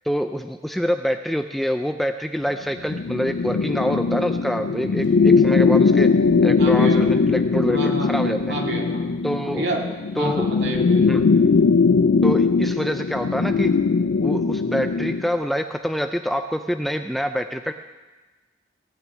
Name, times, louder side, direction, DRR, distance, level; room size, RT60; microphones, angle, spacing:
voice 1, 0.0-6.1 6.4-8.5 9.2-9.7 10.2-10.5 11.0-11.3 12.2-13.7 14.2-17.7, equal, ahead, 7 dB, 0.4 m, -26 dB
sound 1, 2.8-15.3, left 4 dB, 70° left, 0.4 m, -20 dB
voice 2, 6.6-7.1 7.7-8.2 8.5-9.1 9.5-9.9 10.2-11.1, right 1 dB, 70° right, 0 dB, 2.2 m, -29 dB
17.0 x 6.1 x 8.5 m, 1.2 s
head